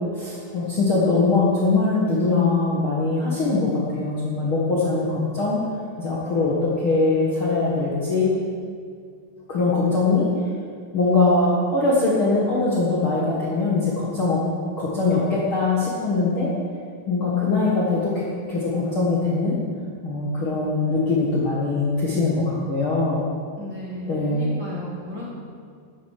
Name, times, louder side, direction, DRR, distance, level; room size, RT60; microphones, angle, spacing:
voice 1, 0.1-5.6 6.0-8.3 9.5-10.3 10.9-14.4 14.8-16.5 17.1-19.6 20.0-23.2 24.1-24.5, left 3 dB, 85° left, -6 dB, 1.1 m, -22 dB
voice 2, 23.6-25.2, equal, 45° right, -7 dB, 1.6 m, -35 dB
9.7 x 9.4 x 6.6 m, 2.1 s
omnidirectional pair, 5.1 m